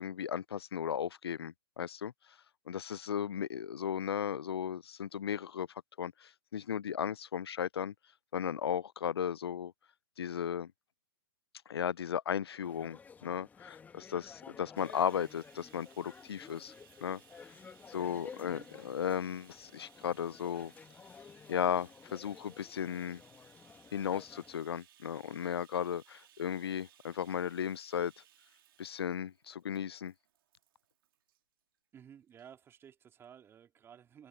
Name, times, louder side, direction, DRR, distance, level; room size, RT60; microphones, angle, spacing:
voice 1, 0.0-2.1 2.7-5.7 6.0-7.9 8.3-9.7 10.2-10.7 11.7-16.7 17.0-17.2 17.9-20.7 21.5-23.2 23.9-28.1 28.8-30.1, left 8 dB, 90° left, 0.4 m, -35 dB
sound 1, 12.6-24.6, left 6 dB, 15° left, 1.5 m, -53 dB
Bathtub (filling or washing), 14.7-31.4 32.3-32.5 32.8-32.9, right 12 dB, 65° right, 3.1 m, -64 dB
voice 2, 31.9-34.3, right 8 dB, 20° right, 3.4 m, -55 dB
hypercardioid pair, 130°, 13 cm